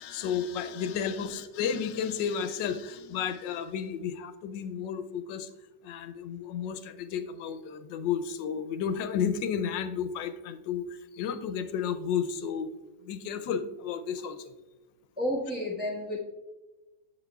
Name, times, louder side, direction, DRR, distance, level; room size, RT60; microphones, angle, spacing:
voice 1, 0.0-5.5 5.8-10.9 11.1-12.7 13.0-14.5, left 7 dB, 90° left, 9 dB, 1.3 m, -32 dB
voice 2, 15.2-16.2, equal, 5° right, -6 dB, 1.2 m, -31 dB
8.2 x 7.3 x 2.3 m, 1.1 s
omnidirectional pair, 1.9 m